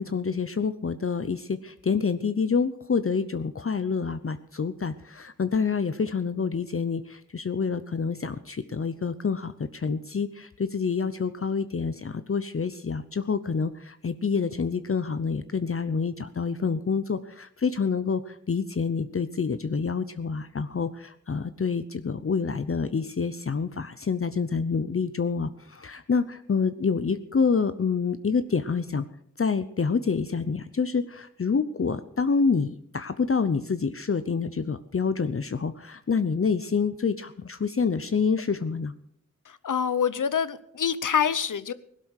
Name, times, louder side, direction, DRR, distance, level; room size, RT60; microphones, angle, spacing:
voice 1, 0.0-29.0 29.4-38.9, left 5 dB, 45° left, 11 dB, 0.8 m, -27 dB
voice 2, 39.4-41.7, left 7 dB, 80° left, 15 dB, 0.9 m, -26 dB
17.0 x 12.0 x 6.5 m, 0.67 s
wide cardioid pair, 80°, 31 cm